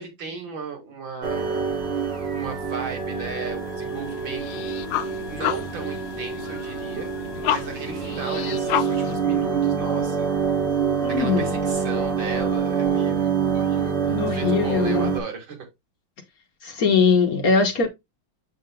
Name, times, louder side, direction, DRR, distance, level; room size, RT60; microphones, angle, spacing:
voice 1, 0.0-1.7 2.3-7.1 7.4-10.3 11.1-15.7, right 5 dB, 75° right, 2.7 m, -36 dB
sound 1, 1.2-15.2, right 6 dB, 35° right, 1.3 m, -26 dB
sound 2, 3.6-9.1, left 12 dB, 75° left, 1.2 m, -31 dB
voice 2, 11.0-11.6 14.1-15.1 16.6-17.9, left 5 dB, 55° left, 1.2 m, -21 dB
7.1 x 6.5 x 2.2 m
omnidirectional pair, 2.1 m